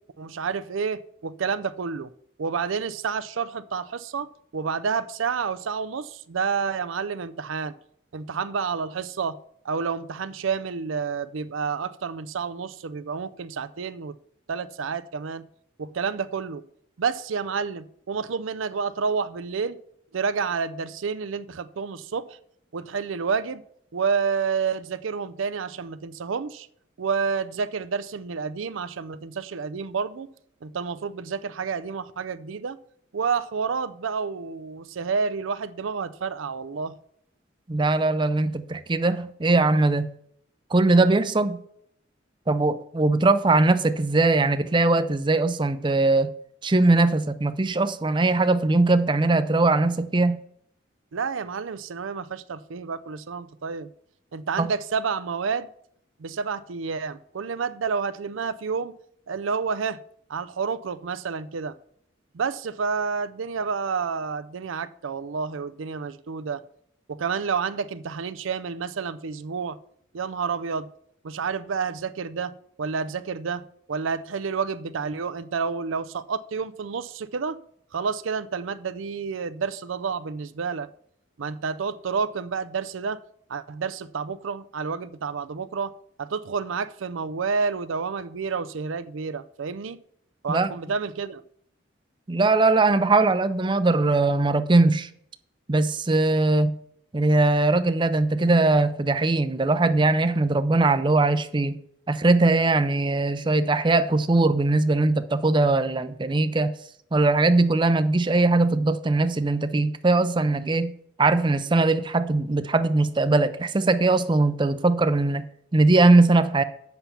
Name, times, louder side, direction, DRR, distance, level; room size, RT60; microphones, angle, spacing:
voice 1, 0.2-2.1 2.4-4.3 4.5-7.7 8.1-9.4 9.6-14.1 14.5-15.5 15.8-16.6 17.0-19.8 20.1-22.4 22.7-23.6 23.9-26.7 27.0-30.3 30.6-32.8 33.1-36.9 51.1-53.9 54.3-55.7 56.2-58.9 59.3-60.0 60.3-61.7 62.3-66.6 67.1-69.8 70.1-70.9 71.2-72.5 72.8-73.6 73.9-77.6 77.9-80.9 81.4-83.2 83.5-85.9 86.2-90.0 90.4-91.4, right 5 dB, 90° right, 0.5 m, -29 dB
voice 2, 37.7-40.1 40.7-41.6 42.5-46.3 46.6-50.4 54.6-54.7 90.5-90.7 92.3-95.1 95.7-96.8 97.1-101.8 102.1-106.7 107.1-110.9 111.2-115.4 115.7-116.6, right 2 dB, 25° right, 0.5 m, -20 dB
7.8 x 5.7 x 6.9 m
head